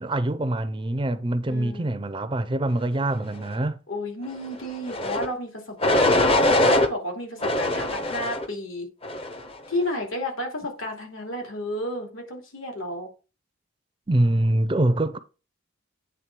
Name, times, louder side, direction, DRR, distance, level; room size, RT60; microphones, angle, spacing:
voice 1, 0.0-3.8 14.1-15.2, right 1 dB, 25° right, 0.5 m, -24 dB
voice 2, 1.5-2.0 3.9-8.9 9.2-9.3 9.7-13.1, left 1 dB, 75° left, 2.7 m, -32 dB
sound 1, 4.9-5.3 5.8-6.9 7.4-8.5 9.0-9.5, left 1 dB, 25° left, 0.7 m, -22 dB
8.9 x 3.6 x 5.9 m
head